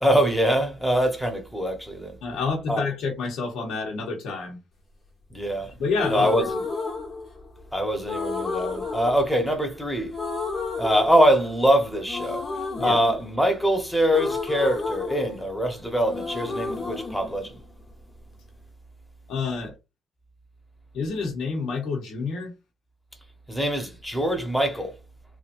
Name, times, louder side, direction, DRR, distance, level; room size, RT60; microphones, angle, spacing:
voice 1, 0.0-2.1 2.7-2.8 5.3-5.7 6.1-6.4 7.7-10.1 10.8-12.4 12.8-17.5 23.5-24.9, equal, 5° left, 1.1 m, -23 dB
voice 2, 2.2-4.6 5.8-6.5 12.8-13.0 19.3-19.7 20.9-22.5, left 4 dB, 80° left, 1.0 m, -28 dB
sound 1, 6.0-7.6 8.1-9.8 10.1-11.7 12.1-15.8 16.1-18.1, left 4 dB, 45° left, 1.3 m, -31 dB
3.2 x 2.6 x 2.6 m
cardioid pair, 90°, 0 cm